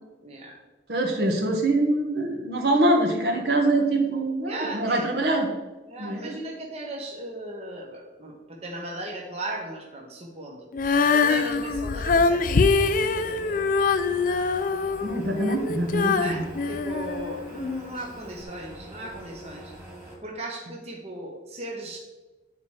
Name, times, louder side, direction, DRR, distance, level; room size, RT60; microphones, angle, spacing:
voice 1, 0.2-0.5 4.1-5.1 5.9-8.3 8.6-10.7 11.1-13.8 16.2-19.7 20.2-22.0, right 1 dB, 35° right, -2 dB, 1.2 m, -37 dB
voice 2, 0.9-5.5 6.0-6.3 15.0-16.5, right 1 dB, 60° right, 1 dB, 1.2 m, -24 dB
Female singing, 10.7-17.8 18.4-18.5, left 4 dB, 45° left, 0.4 m, -24 dB
sound 1, 12.2-20.1, equal, 10° right, 2.1 m, -44 dB
9.2 x 4.3 x 4.8 m, 1.2 s
head